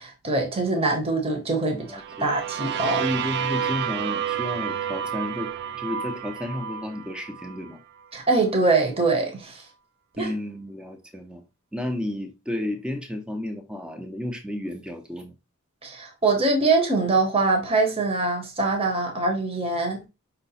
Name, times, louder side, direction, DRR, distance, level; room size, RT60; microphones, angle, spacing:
voice 1, 0.0-3.0 8.1-9.6 10.2-10.3 15.8-20.0, right 3 dB, 25° right, 0.9 m, -23 dB
voice 2, 1.7-2.3 3.0-7.8 10.2-15.4, left 1 dB, 5° right, 0.6 m, -32 dB
sound 1, 1.9-7.7, right 8 dB, 50° right, 0.3 m, -30 dB
5.6 x 2.2 x 4.1 m
head